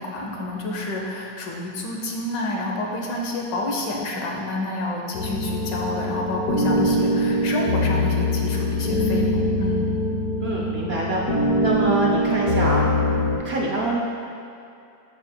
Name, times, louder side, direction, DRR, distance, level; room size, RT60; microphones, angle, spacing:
voice 1, 0.0-9.9, left 2 dB, 80° left, 0 dB, 1.5 m, -29 dB
sound 1, 5.1-13.4, left 1 dB, 60° left, 1.2 m, -23 dB
voice 2, 10.4-12.8 13.2-14.0, right 2 dB, 60° right, -3 dB, 0.7 m, -25 dB
12.0 x 4.8 x 2.2 m, 2.6 s
omnidirectional pair, 1.9 m